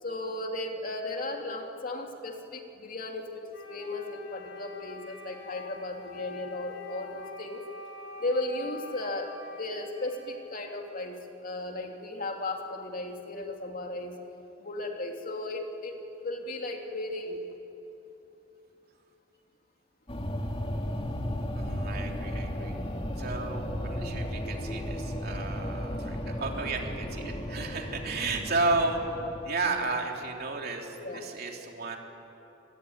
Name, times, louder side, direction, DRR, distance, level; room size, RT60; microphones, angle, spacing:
voice 1, 0.0-3.4 3.7-7.6 8.2-9.3 9.6-14.1 14.6-17.4 31.0-31.2, left 2 dB, 45° left, 2 dB, 2.7 m, -35 dB
Wind instrument woodwind instrument, 3.5-11.2, left 3 dB, 75° left, 3.5 m, -45 dB
sound 1, 20.1-29.5, equal, 30° left, 2.1 m, -34 dB
voice 2, 21.5-22.7 23.2-29.0 29.4-32.0, right 3 dB, 50° right, 1 dB, 3.4 m, -33 dB
26.0 x 24.0 x 9.6 m, 3.0 s
head